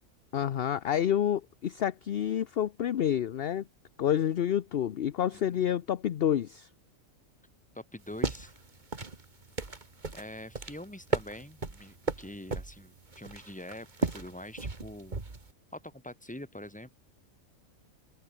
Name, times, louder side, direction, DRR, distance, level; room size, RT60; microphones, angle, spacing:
voice 1, 0.3-3.7 4.0-6.7, left 10 dB, 55° left, 0.8 m, -28 dB
voice 2, 7.7-8.5 10.1-15.2 15.7-16.9, left 1 dB, 5° left, 2.2 m, -44 dB
sound 1, 8.0-15.5, right 3 dB, 35° right, 2.1 m, -36 dB
omnidirectional pair, 1.5 m